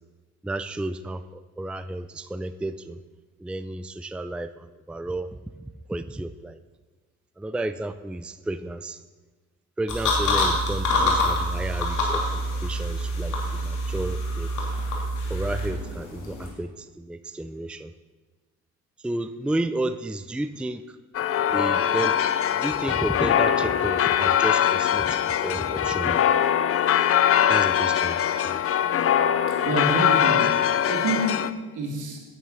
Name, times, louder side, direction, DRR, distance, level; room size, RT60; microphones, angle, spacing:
voice 1, 0.4-3.0 3.4-5.3 5.6-6.6 7.4-9.0 9.8-14.5 15.3-17.9 19.0-21.0 21.5-22.2 22.6-26.2 27.5-28.2 28.4-28.6, right 2 dB, 5° right, 11 dB, 0.4 m, -32 dB
sound 1, 9.9-16.5, left 1 dB, 80° left, 2.8 m, -26 dB
sound 2, 21.1-31.5, left 9 dB, 50° left, 0.6 m, -22 dB
voice 2, 29.5-32.2, right 2 dB, 80° right, 1 dB, 2.6 m, -28 dB
9.5 x 9.4 x 5.7 m, 1.3 s
cardioid pair, 90°, 30 cm